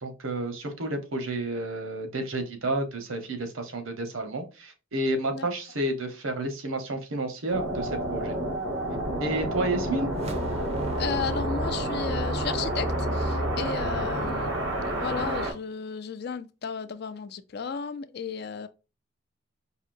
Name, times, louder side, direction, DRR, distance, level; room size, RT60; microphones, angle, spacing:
voice 1, 0.0-8.4 9.2-10.1 14.0-14.2, right 2 dB, 75° right, 0.9 m, -31 dB
sound 1, 7.5-15.5, right 1 dB, 90° right, 1.3 m, -30 dB
sound 2, 10.1-15.5, right 1 dB, 30° right, 0.5 m, -34 dB
voice 2, 10.8-14.5 14.8-18.7, left 6 dB, 50° left, 0.4 m, -34 dB
4.9 x 2.8 x 2.5 m
head